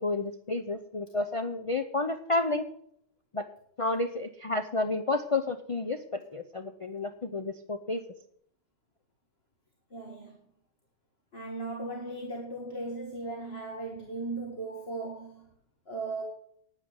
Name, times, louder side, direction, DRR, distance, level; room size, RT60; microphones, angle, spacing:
voice 1, 0.0-2.7 3.3-3.5 3.8-8.0, left 2 dB, 35° left, 8 dB, 0.6 m, -31 dB
voice 2, 9.9-10.4 11.3-15.5 15.9-16.2, right 2 dB, 55° left, 0 dB, 2.2 m, -37 dB
9.9 x 9.4 x 8.0 m, 0.68 s
omnidirectional pair, 1.3 m